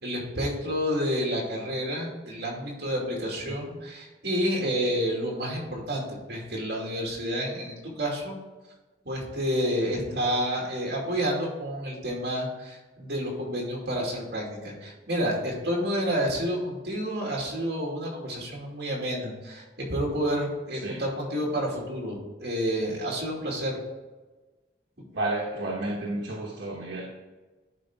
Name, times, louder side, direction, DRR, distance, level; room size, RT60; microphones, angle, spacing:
voice 1, 0.0-8.3 9.0-19.6 19.9-23.8, equal, 60° right, -2 dB, 2.5 m, -29 dB
voice 2, 9.9-10.2 20.7-21.0 25.1-27.0, right 2 dB, 85° right, -3 dB, 1.1 m, -32 dB
11.0 x 4.5 x 3.8 m, 1.2 s
head